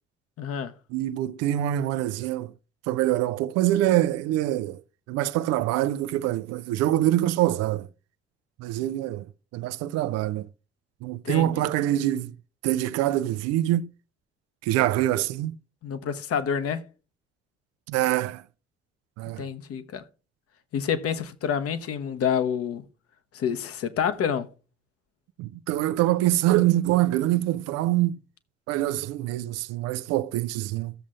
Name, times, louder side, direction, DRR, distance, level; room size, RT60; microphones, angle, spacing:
voice 1, 0.4-0.7 11.2-11.6 15.8-16.8 19.4-20.0 20.7-22.8 23.3-24.5, left 7 dB, 50° left, 1.0 m, -28 dB
voice 2, 0.9-2.5 2.9-4.8 5.1-7.9 8.6-9.3 9.5-10.5 11.0-12.3 12.6-13.9 14.6-15.6 17.9-18.4 19.2-19.4 25.4-28.2 28.7-30.9, right 14 dB, 60° right, 0.5 m, -25 dB
16.0 x 7.3 x 2.4 m
figure-of-eight pair, 45°, 30 cm